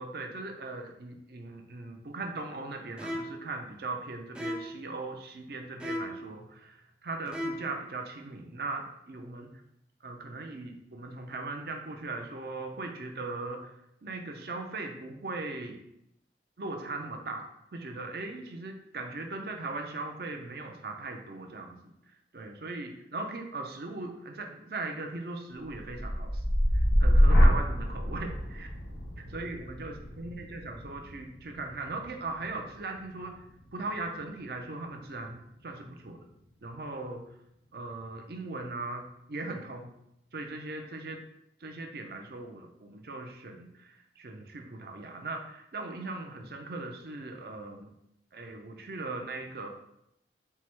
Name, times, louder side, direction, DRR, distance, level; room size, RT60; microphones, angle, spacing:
voice 1, 0.0-9.5 10.0-13.7 14.0-15.8 16.6-21.9 22.3-26.4 26.7-28.3 28.5-28.7 29.3-33.4 33.7-36.3 36.6-37.2 37.7-39.9 40.3-41.2 41.6-47.9 48.3-49.7, right 3 dB, 55° right, 3 dB, 0.5 m, -39 dB
sound 1, 3.0-3.5 4.4-4.8 5.8-6.3 7.3-7.8, equal, 5° right, 0.3 m, -36 dB
sound 2, 25.7-33.7 34.2-34.6, equal, 90° left, 1.1 m, -27 dB
4.6 x 2.1 x 4.4 m, 0.80 s
head